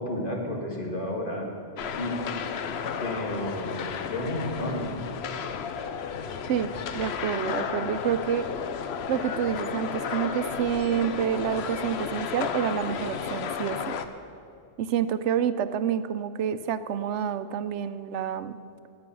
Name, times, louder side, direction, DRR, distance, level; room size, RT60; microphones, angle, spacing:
voice 1, 0.0-1.5 1.8-2.2 3.0-4.9, left 1 dB, 45° left, 0 dB, 2.1 m, -32 dB
sound 1, 1.8-14.1, left 6 dB, 65° left, 0.9 m, -33 dB
voice 2, 6.9-8.5 9.1-13.9 14.8-18.6, right 9 dB, 85° right, 13 dB, 0.9 m, -28 dB
20.0 x 7.7 x 6.1 m, 2.5 s
omnidirectional pair, 1.2 m